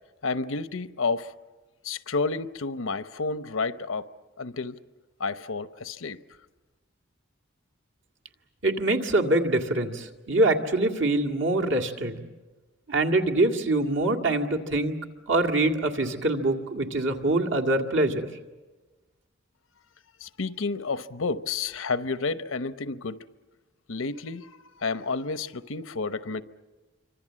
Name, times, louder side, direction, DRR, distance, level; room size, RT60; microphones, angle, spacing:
voice 1, 0.2-1.3 1.8-4.1 4.4-4.8 5.2-6.2 20.2-23.2 23.9-26.4, left 4 dB, 75° left, 0.8 m, -30 dB
voice 2, 8.6-12.3 12.9-15.0 15.3-18.3, right 2 dB, 65° right, 2.1 m, -24 dB
27.0 x 25.0 x 7.5 m
head